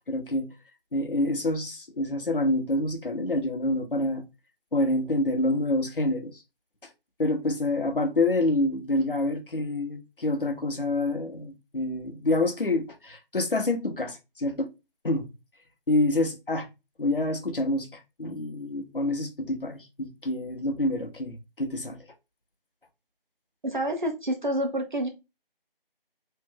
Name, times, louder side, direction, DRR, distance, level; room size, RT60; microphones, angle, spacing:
voice 1, 0.1-0.5 0.9-4.2 4.7-6.3 7.2-14.7 15.0-15.3 15.9-16.7 17.0-22.0, left 2 dB, 65° left, 1.0 m, -27 dB
voice 2, 23.6-25.1, right 1 dB, 55° right, 1.0 m, -28 dB
3.2 x 2.6 x 3.7 m
figure-of-eight pair, 165°, 29 cm